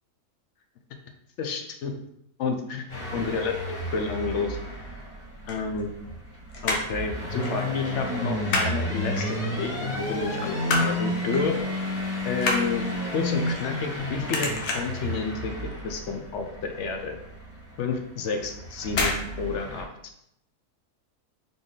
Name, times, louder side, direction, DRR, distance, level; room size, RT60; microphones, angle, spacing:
voice 1, 1.4-1.9 2.4-4.6 5.5-5.9 6.6-11.6 12.2-12.9 13.1-15.6 15.8-17.2 17.8-19.9, left 4 dB, 65° left, 5 dB, 0.8 m, -30 dB
sound 1, 2.9-19.8, left 1 dB, 35° left, 2.1 m, -32 dB
sound 2, 5.2-6.3 6.5-7.0 7.4-7.6 7.9-8.7 9.1-9.7 10.2-11.0 11.3-11.5 11.9-14.0 14.3-15.0 15.5-15.8 16.0-16.1 16.5-16.6 17.1-17.2 18.0-18.3 18.9-19.2 19.5-19.6, left 2 dB, 90° left, 1.4 m, -28 dB
4.0 x 3.4 x 3.7 m, 0.78 s
omnidirectional pair, 1.5 m